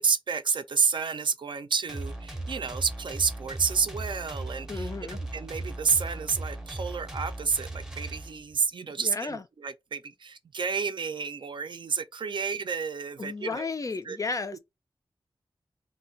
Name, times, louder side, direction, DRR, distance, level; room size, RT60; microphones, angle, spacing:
voice 1, 0.0-13.7 14.0-14.2 14.5-14.6, right 5 dB, 60° right, 0.4 m, -30 dB
sound 1, 1.9-8.6, right 2 dB, 5° right, 0.6 m, -37 dB
voice 2, 4.7-5.2 9.0-9.4 13.2-14.6, left 4 dB, 35° left, 0.3 m, -33 dB
2.3 x 2.2 x 3.9 m
wide cardioid pair, 105°, 9 cm